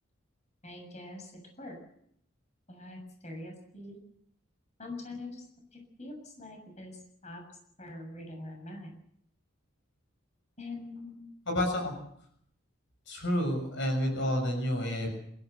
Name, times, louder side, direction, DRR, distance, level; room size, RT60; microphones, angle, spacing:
voice 1, 0.6-1.3 1.6-1.8 2.7-4.0 4.8-5.4 5.7-6.9 7.2-7.4 7.8-8.9 10.6-11.3, left 2 dB, 35° left, 3 dB, 6.9 m, -43 dB
voice 2, 11.5-11.9 13.1-15.1, equal, 60° left, 5 dB, 6.8 m, -29 dB
27.0 x 14.5 x 8.2 m, 0.71 s
head